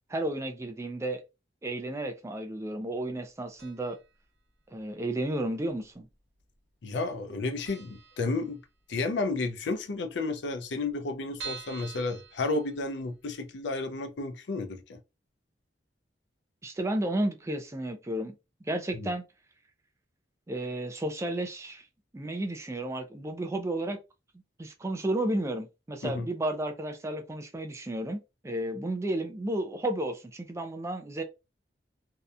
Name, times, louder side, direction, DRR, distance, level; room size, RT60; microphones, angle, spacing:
voice 1, 0.1-1.2 1.6-4.0 4.7-6.1 16.6-18.4 18.7-19.2 20.5-21.8 22.1-24.0 24.6-31.2, right 1 dB, 15° right, 0.3 m, -32 dB
sound 1, 3.6-4.1 4.4-4.5 5.4-6.1 6.4-6.6 6.8-6.9 7.3-7.4 7.6-9.0 9.3-9.4 9.7-9.8 10.0-10.1 10.6-13.2 13.7-13.8 14.1-14.2, right 6 dB, 80° right, 0.8 m, -45 dB
voice 2, 6.8-8.6 8.9-15.0 18.9-19.1 26.0-26.3, left 3 dB, 85° left, 0.5 m, -32 dB
2.7 x 2.1 x 2.4 m
head